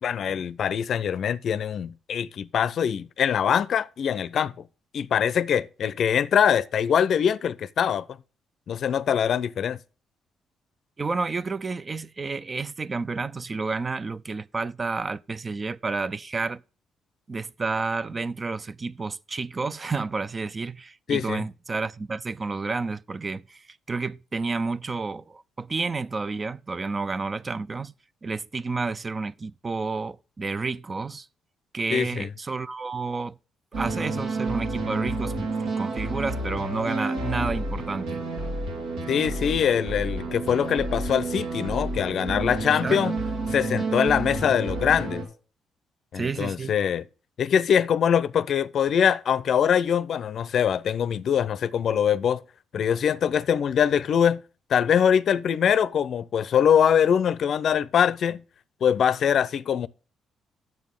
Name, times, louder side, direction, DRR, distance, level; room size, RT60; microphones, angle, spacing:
voice 1, 0.0-4.5 4.9-8.1 8.7-9.8 21.1-21.4 31.9-32.3 39.1-43.2 43.5-45.3 46.1-47.0 47.4-52.4 52.7-54.4 54.7-58.4 58.8-59.9, left 8 dB, 60° left, 0.5 m, -23 dB
voice 2, 11.0-16.6 17.3-27.9 28.2-31.3 31.7-33.4 33.8-35.5 35.8-38.2 42.7-43.0 46.2-46.8, right 4 dB, 30° right, 0.4 m, -30 dB
sound 1, 33.7-45.2, right 2 dB, 90° right, 3.3 m, -30 dB
9.5 x 7.6 x 3.7 m
cardioid pair, 90°, 0 cm